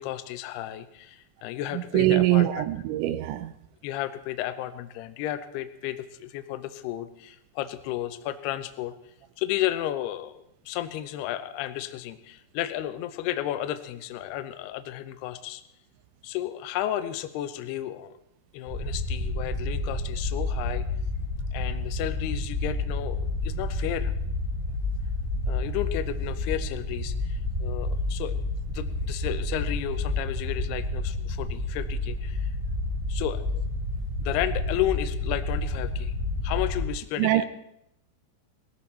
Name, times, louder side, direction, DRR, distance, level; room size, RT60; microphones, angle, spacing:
voice 1, 0.0-2.6 3.8-8.9 9.4-15.6 16.2-18.2 18.5-20.9 21.5-24.1 25.5-28.4 28.7-32.5 33.1-33.6 34.2-36.1 36.4-37.5, left 13 dB, 80° left, 2.4 m, -33 dB
voice 2, 1.9-3.5 37.2-37.5, right 15 dB, 80° right, 2.9 m, -23 dB
sound 1, 18.7-36.9, left 2 dB, 10° right, 1.6 m, -30 dB
19.5 x 14.0 x 4.4 m
omnidirectional pair, 5.5 m